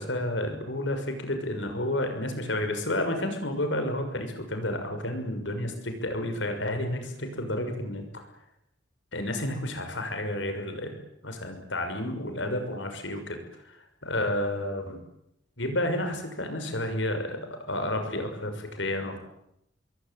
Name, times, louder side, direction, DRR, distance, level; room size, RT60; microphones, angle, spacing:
voice 1, 0.0-8.0 9.1-11.0 11.2-13.4 13.6-15.0 15.6-17.4 17.7-19.2, left 1 dB, 80° left, 6 dB, 6.4 m, -31 dB
26.0 x 22.0 x 9.4 m, 0.81 s
head